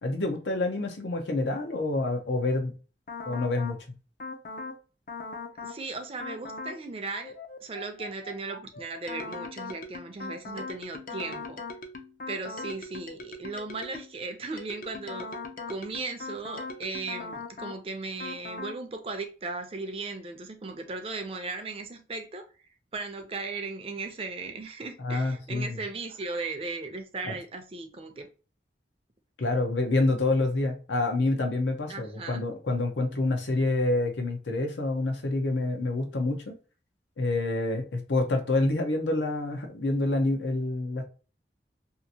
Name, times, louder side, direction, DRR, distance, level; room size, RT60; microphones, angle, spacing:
voice 1, 0.0-2.7 3.2-3.8 25.0-25.7 27.2-27.3 29.4-36.5 37.2-41.0, left 2 dB, 90° left, 0.7 m, -27 dB
sound 1, 3.1-3.8 4.2-4.8 5.1-5.8 6.2-6.8 7.1-14.2 14.6-17.8 18.2-18.8, left 3 dB, 50° left, 0.4 m, -40 dB
voice 2, 5.6-7.3 7.6-11.6 12.3-15.3 15.7-22.5 22.9-28.3 31.9-32.4, right 3 dB, 30° right, 0.4 m, -37 dB
2.8 x 2.5 x 2.7 m
head